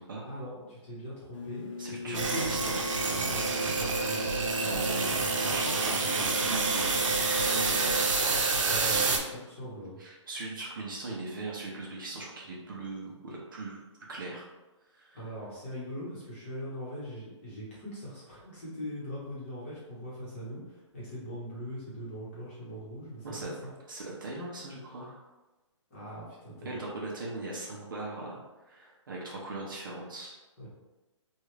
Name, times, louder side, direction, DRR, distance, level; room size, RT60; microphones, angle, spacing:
voice 1, 0.2-2.4 3.2-4.3 8.7-10.0 15.1-23.7 25.9-26.9 30.6-30.7, equal, 25° left, -8 dB, 1.0 m, -41 dB
sound 1, 1.3-8.1, left 4 dB, 80° left, 0.6 m, -40 dB
voice 2, 1.8-2.8 4.6-9.2 10.0-13.8 14.1-14.5 14.9-15.2 23.2-23.5 23.9-25.2 26.6-28.4 28.7-30.4, right 2 dB, 45° right, -3 dB, 0.6 m, -39 dB
sound 2, 2.1-9.2, right 4 dB, 90° right, 0.6 m, -28 dB
3.1 x 2.3 x 3.2 m, 1.1 s
hypercardioid pair, 175°, 16 cm